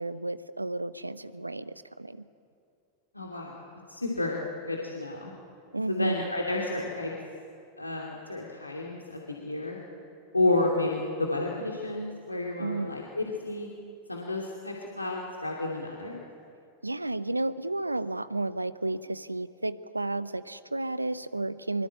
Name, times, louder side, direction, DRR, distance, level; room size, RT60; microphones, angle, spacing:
voice 1, 0.0-2.2 5.7-6.3 12.6-13.0 16.8-21.9, right 2 dB, 85° right, 15 dB, 0.8 m, -32 dB
voice 2, 3.1-3.6 3.9-4.4 4.6-5.3 5.9-7.1 7.8-9.8 10.3-13.7 14.1-16.2, left 2 dB, 85° left, -2 dB, 2.6 m, -31 dB
24.0 x 23.0 x 8.9 m, 2.4 s
figure-of-eight pair, 90°, 0 cm